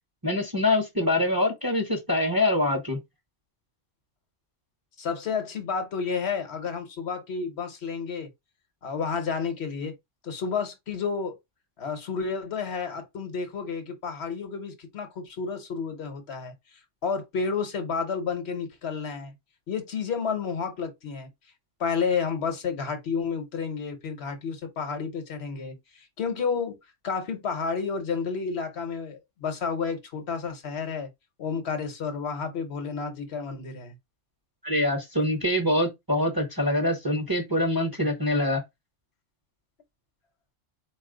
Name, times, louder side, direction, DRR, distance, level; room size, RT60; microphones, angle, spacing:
voice 1, 0.2-3.0 34.6-38.6, left 1 dB, 20° right, 0.8 m, -24 dB
voice 2, 5.0-8.3 8.8-9.9 10.2-11.4 11.8-16.5 17.0-19.3 19.7-21.3 21.8-26.8 27.0-31.1 31.4-33.9, left 5 dB, 60° left, 1.1 m, -31 dB
4.1 x 2.4 x 3.7 m
omnidirectional pair, 1.3 m